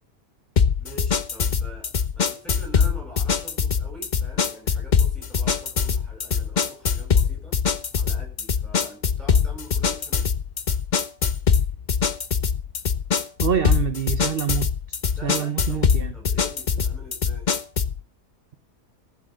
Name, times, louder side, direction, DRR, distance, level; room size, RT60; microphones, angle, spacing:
sound 1, 0.6-18.0, left 6 dB, 35° left, 0.7 m, -23 dB
voice 1, 0.8-7.6 7.9-10.4 15.1-17.5, right 1 dB, ahead, 7.8 m, -45 dB
voice 2, 13.4-14.7 15.2-16.1, right 8 dB, 40° right, 1.0 m, -26 dB
15.0 x 7.9 x 7.7 m
omnidirectional pair, 1.8 m